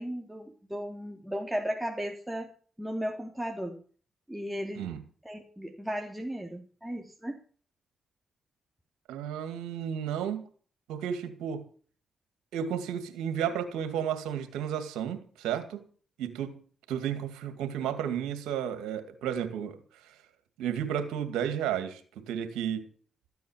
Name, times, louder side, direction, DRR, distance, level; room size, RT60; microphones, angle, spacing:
voice 1, 0.0-2.5 2.8-3.8 4.3-4.9 5.2-7.4, equal, 5° right, 0 dB, 3.2 m, -35 dB
voice 2, 9.1-10.4 10.9-11.7 12.5-15.8 16.2-16.6 16.9-19.8 20.6-22.0 22.3-22.8, right 9 dB, 85° right, 9 dB, 2.2 m, -32 dB
14.0 x 9.5 x 7.4 m, 0.43 s
supercardioid pair, 50°, 0 cm